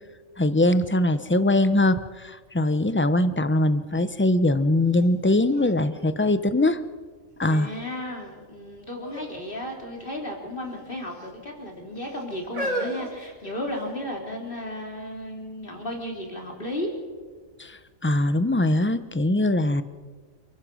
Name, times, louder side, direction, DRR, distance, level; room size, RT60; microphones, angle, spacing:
voice 1, 0.4-6.8 7.4-7.7 17.6-19.8, left 1 dB, 10° left, 12 dB, 0.6 m, -22 dB
sound 1, 5.0-5.1 5.5-7.0 7.6-8.1 9.0-9.3 9.6-9.8 10.6-11.3 12.0-14.0 14.8-14.9, right 1 dB, 85° right, 4.4 m, -35 dB
voice 2, 7.5-16.9, left 1 dB, 40° left, 0 dB, 4.2 m, -34 dB
28.0 x 15.0 x 6.3 m, 1.5 s
omnidirectional pair, 1.4 m